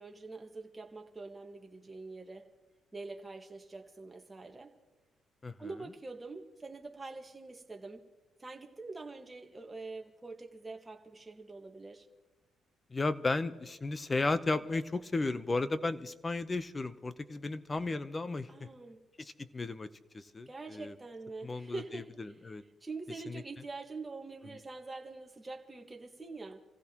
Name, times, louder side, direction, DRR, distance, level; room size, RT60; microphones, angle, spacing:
voice 1, 0.0-2.5 2.9-4.7 5.6-8.0 8.4-12.1 18.5-19.0 20.5-26.6, right 3 dB, 20° right, 1.6 m, -45 dB
voice 2, 12.9-18.7 19.5-19.9 20.1-20.9 21.4-22.0 22.4-22.6 23.3-23.4, left 3 dB, 25° left, 0.8 m, -34 dB
27.0 x 15.5 x 3.0 m
cardioid pair, 90°, 0 cm